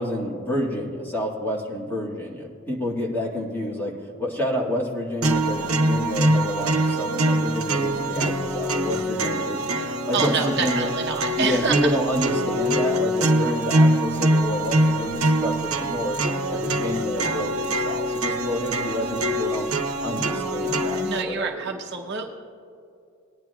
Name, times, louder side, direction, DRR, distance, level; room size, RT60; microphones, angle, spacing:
voice 1, 0.0-9.7 10.1-10.9 11.4-16.2 16.5-19.7 20.0-21.8, equal, 10° left, -4 dB, 1.9 m, -29 dB
sound 1, 5.2-21.2, right 1 dB, 90° right, 0.9 m, -24 dB
voice 2, 10.1-11.8 21.0-22.3, right 5 dB, 55° right, 2 dB, 0.8 m, -27 dB
19.0 x 10.5 x 2.4 m, 2.5 s
head